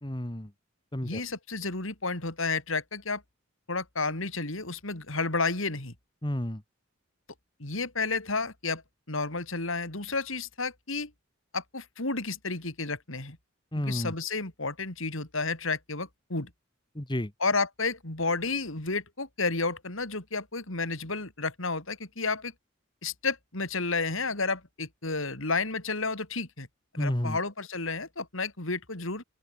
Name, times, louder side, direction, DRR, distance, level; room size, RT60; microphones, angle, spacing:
voice 1, 0.0-0.5 0.9-1.2 6.2-6.6 13.7-14.1 17.0-17.3 27.0-27.4, left 1 dB, 20° left, 1.8 m, -31 dB
voice 2, 1.0-3.2 3.7-5.9 7.6-8.8 9.1-11.1 11.5-13.4 13.8-16.5 17.4-22.5 23.0-26.7 26.9-29.2, left 3 dB, 70° left, 4.0 m, -31 dB
open air
head